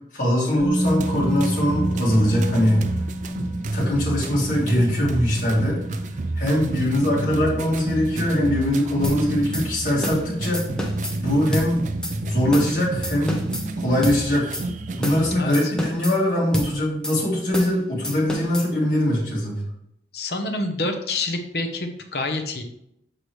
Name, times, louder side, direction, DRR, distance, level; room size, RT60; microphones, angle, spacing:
voice 1, 0.1-2.9 3.7-5.8 6.4-10.6 11.2-11.8 12.1-13.4 13.8-14.5 15.0-19.6, left 1 dB, 50° left, -5 dB, 2.5 m, -22 dB
Musical instrument, 0.6-8.5 8.8-8.9, equal, 85° left, 1.4 m, -31 dB
sound 1, 0.8-15.4, right 2 dB, 45° right, 0.4 m, -29 dB
sound 2, 9.0-9.2 9.5-9.7 10.0-10.2 10.5-11.2 11.5-11.7 12.0-12.1 12.5-12.7 13.0-13.7 14.0-14.2 14.5-14.7 15.0-15.2 15.5-16.2 16.5-16.7 17.0-17.2 17.5-17.7 18.0-18.7, equal, 5° left, 0.8 m, -29 dB
voice 2, 15.4-15.7 20.1-22.6, left 2 dB, 65° left, 5 dB, 0.9 m, -27 dB
6.7 x 5.9 x 3.2 m, 0.78 s
head